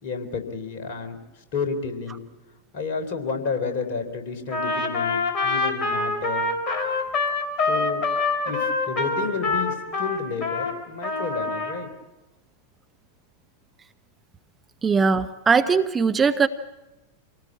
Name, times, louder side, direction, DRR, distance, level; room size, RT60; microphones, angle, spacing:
voice 1, 0.0-2.2 2.7-6.4 7.6-8.0 8.5-11.9, left 5 dB, 50° left, 6 dB, 3.5 m, -31 dB
Trumpet, 4.5-10.7 11.0-11.8, left 3 dB, 30° left, 4.2 m, -25 dB
voice 2, 14.8-16.5, right 5 dB, 15° right, 9 dB, 0.9 m, -20 dB
26.5 x 18.0 x 8.7 m, 1.0 s
figure-of-eight pair, 90°, 0 cm